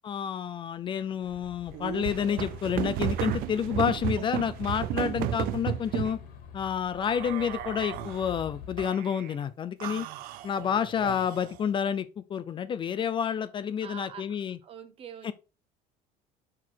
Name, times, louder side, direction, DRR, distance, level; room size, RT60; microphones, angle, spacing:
voice 1, 0.0-6.2 6.5-10.1 10.4-14.6 15.2-15.3, left 8 dB, 30° left, 0.5 m, -29 dB
sound 1, 1.2-8.9, left 8 dB, 65° left, 1.9 m, -48 dB
sound 2, 1.7-6.2 7.0-8.3 8.8-9.4 9.8-11.6, right 12 dB, 70° right, 0.6 m, -33 dB
voice 2, 13.8-14.3 14.6-15.3, right 8 dB, 35° right, 1.0 m, -44 dB
6.0 x 4.5 x 4.6 m
cardioid pair, 145°, 16 cm